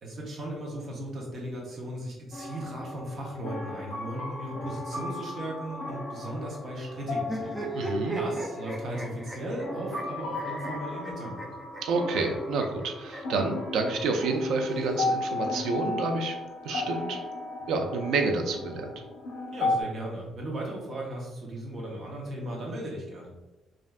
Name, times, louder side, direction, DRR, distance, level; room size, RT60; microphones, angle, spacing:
voice 1, 0.0-7.6 7.9-11.5 19.5-23.3, right 1 dB, 40° right, -3 dB, 0.8 m, -36 dB
sound 1, 2.3-19.8, left 2 dB, 80° left, 0.7 m, -35 dB
sound 2, 7.2-13.4 14.4-15.5, right 2 dB, 5° right, 0.3 m, -37 dB
voice 2, 7.7-8.2 11.8-16.4 16.6-17.2 17.7-18.9, right 3 dB, 75° right, 4 dB, 0.4 m, -28 dB
3.3 x 2.5 x 2.3 m, 1.0 s
cardioid pair, 180°, 0 cm